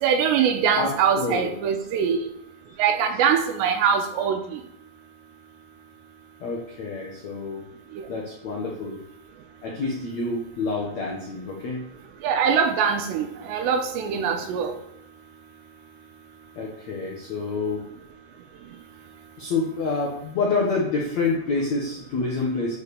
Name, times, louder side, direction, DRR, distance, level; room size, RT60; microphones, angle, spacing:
voice 1, 0.0-2.2 2.8-4.4 12.2-14.7, right 7 dB, 75° right, 5 dB, 2.7 m, -22 dB
voice 2, 0.7-1.5 6.4-7.6 8.1-9.0 9.6-11.8 16.5-17.8 19.4-22.8, left 3 dB, 85° left, -2 dB, 1.5 m, -27 dB
9.3 x 5.1 x 6.7 m, 0.78 s
omnidirectional pair, 5.6 m